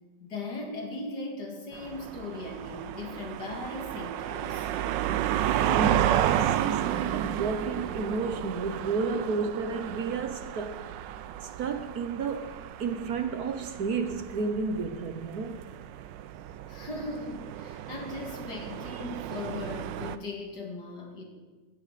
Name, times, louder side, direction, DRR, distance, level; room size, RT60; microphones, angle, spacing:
voice 1, 0.2-4.7 16.7-21.2, left 2 dB, 65° left, 2.8 m, -38 dB
sound 1, 1.7-20.2, right 11 dB, 85° right, 1.3 m, -32 dB
voice 2, 5.6-10.9 11.4-12.5 12.8-15.6, right 4 dB, 60° right, 1.4 m, -32 dB
16.0 x 15.5 x 4.2 m
omnidirectional pair, 1.9 m